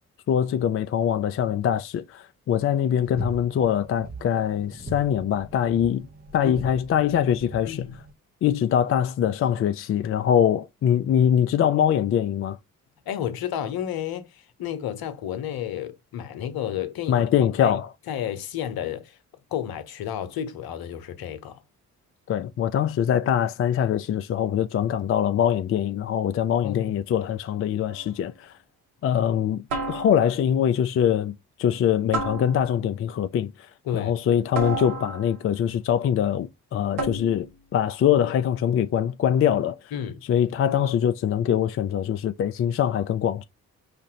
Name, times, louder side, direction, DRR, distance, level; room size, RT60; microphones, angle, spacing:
voice 1, 0.3-6.1 6.3-7.8 8.4-12.6 17.1-17.9 22.3-28.5 29.0-31.3 31.6-33.5 33.9-37.5 37.7-39.8 40.3-43.4, left 9 dB, 35° left, 0.4 m, -23 dB
sound 1, 3.0-8.1, right 2 dB, 20° right, 1.1 m, -40 dB
voice 2, 7.6-8.0 13.0-17.3 17.6-17.8 18.1-19.2 19.5-21.6 26.6-26.9 33.8-34.1 39.9-40.2, left 10 dB, 60° left, 0.9 m, -31 dB
sound 2, 27.9-28.2 29.7-30.5 32.1-33.0 34.5-35.5 37.0-37.6, right 2 dB, 70° right, 1.7 m, -31 dB
5.1 x 2.5 x 2.8 m
hypercardioid pair, 45°, 42 cm